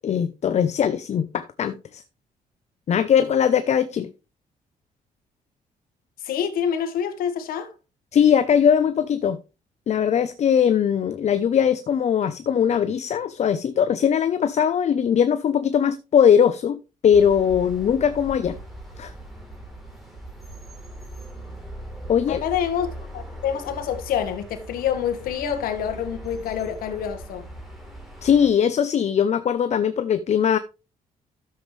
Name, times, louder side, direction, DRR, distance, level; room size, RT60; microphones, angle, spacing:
voice 1, 0.0-2.0 2.9-4.1 8.1-9.4 9.9-18.6 19.0-19.1 22.1-22.4 28.2-30.6, left 8 dB, 50° left, 0.7 m, -20 dB
voice 2, 6.2-7.7 22.3-22.9 23.1-27.5, left 8 dB, 90° left, 1.6 m, -27 dB
sound 1, 17.1-28.5, right 1 dB, ahead, 3.5 m, -40 dB
12.0 x 7.5 x 3.3 m
cardioid pair, 100°, 15 cm